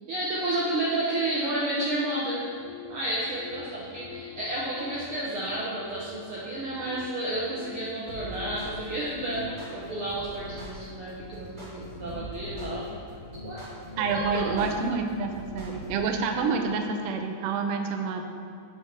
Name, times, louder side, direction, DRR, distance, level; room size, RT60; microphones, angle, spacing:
voice 1, 0.1-2.5 2.9-12.9 13.4-13.6 13.9-14.9, right 1 dB, 65° right, -6 dB, 1.4 m, -31 dB
sound 1, 2.3-17.0, left 8 dB, 85° left, 2.5 m, -47 dB
sound 2, 8.1-16.0, equal, 20° right, 1.4 m, -42 dB
voice 2, 14.0-18.2, right 5 dB, 85° right, 4 dB, 1.3 m, -28 dB
8.0 x 6.3 x 5.8 m, 2.3 s
omnidirectional pair, 3.7 m